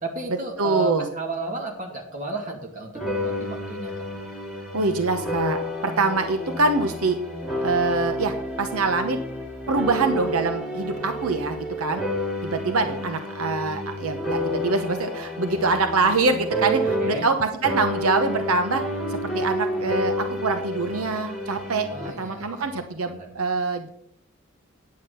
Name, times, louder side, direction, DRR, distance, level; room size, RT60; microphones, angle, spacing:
voice 1, 0.0-3.9 17.0-17.3 21.9-23.3, right 4 dB, 35° right, 1 dB, 2.2 m, -33 dB
voice 2, 0.6-1.1 4.7-7.2 7.6-9.2 9.7-12.0 12.4-18.8 19.1-21.9 22.2-23.9, right 3 dB, 80° right, 6 dB, 0.9 m, -24 dB
sound 1, 2.9-17.4 17.6-22.1, equal, ahead, 2.7 m, -30 dB
9.3 x 8.5 x 5.5 m, 0.71 s
head